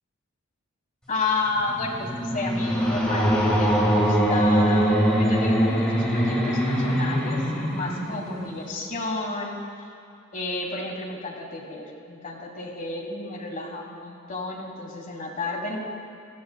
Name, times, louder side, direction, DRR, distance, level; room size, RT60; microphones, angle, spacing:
voice 1, 1.1-7.4 7.7-9.6 10.3-15.8, left 3 dB, 35° left, 0 dB, 1.5 m, -31 dB
sound 1, 1.5-8.8, equal, 5° left, 1.7 m, -23 dB
16.5 x 13.0 x 2.3 m, 2.3 s
head